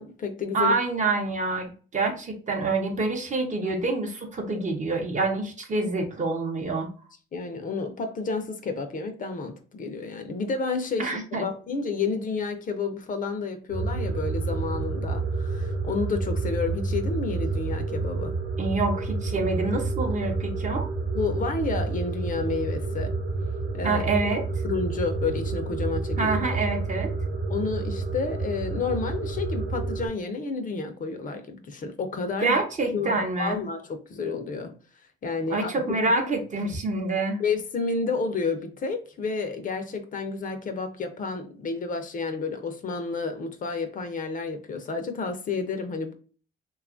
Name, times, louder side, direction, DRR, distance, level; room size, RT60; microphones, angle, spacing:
voice 1, 0.0-0.7 5.8-5.9 7.3-18.3 21.1-23.1 23.7-24.0 24.6-26.3 27.5-32.6 32.9-34.8 35.2-35.7 37.4-46.1, left 4 dB, 45° left, 6 dB, 0.5 m, -30 dB
voice 2, 0.5-6.9 11.0-11.5 18.6-20.9 23.8-24.6 26.2-27.1 32.4-33.6 35.5-37.4, right 3 dB, 40° right, 3 dB, 0.7 m, -27 dB
sound 1, 13.7-30.1, right 3 dB, 80° right, 0.9 m, -29 dB
2.8 x 2.3 x 2.5 m, 0.39 s
cardioid pair, 90°, 20 cm